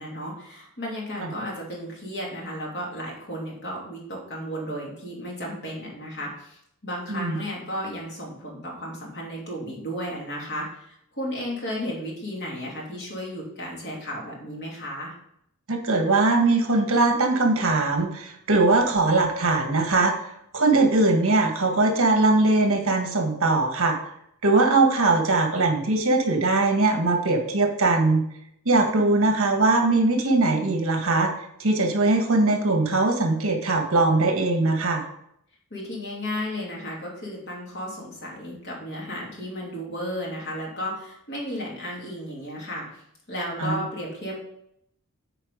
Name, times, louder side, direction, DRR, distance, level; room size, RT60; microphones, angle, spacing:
voice 1, 0.0-15.1 35.7-43.0 43.3-44.3, equal, 50° left, -3 dB, 3.0 m, -34 dB
voice 2, 15.7-20.1 20.5-23.9 24.4-28.2 28.6-31.3 31.6-35.0 43.6-43.7, right 2 dB, 65° right, 3 dB, 1.5 m, -21 dB
8.8 x 4.7 x 5.0 m, 0.74 s
head